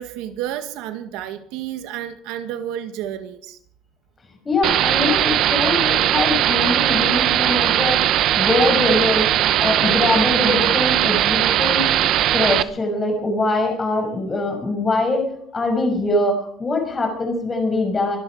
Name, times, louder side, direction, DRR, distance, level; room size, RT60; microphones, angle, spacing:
voice 1, 0.0-3.6, right 11 dB, 80° right, 9 dB, 1.9 m, -31 dB
voice 2, 4.4-9.3 9.6-11.9 12.3-15.3 15.5-18.2, left 2 dB, 20° left, 3 dB, 6.0 m, -22 dB
sound 1, 4.6-12.6, right 12 dB, 50° right, 0.9 m, -19 dB
24.5 x 11.5 x 4.9 m, 0.63 s
cardioid pair, 165°, 0 cm